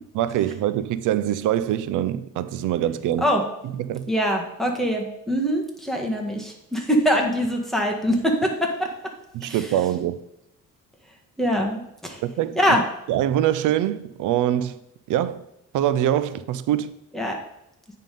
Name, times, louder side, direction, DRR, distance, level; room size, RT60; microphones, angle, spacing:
voice 1, 0.1-3.3 3.8-4.1 9.3-10.2 12.2-12.6 13.1-14.8 15.1-15.5 15.7-17.0, right 11 dB, 85° right, 0.5 m, -24 dB
voice 2, 4.1-8.9 9.4-9.7 11.4-12.2 12.5-12.8 17.1-17.4, equal, ahead, 1.6 m, -23 dB
9.2 x 3.7 x 5.3 m
cardioid pair, 90°, 30 cm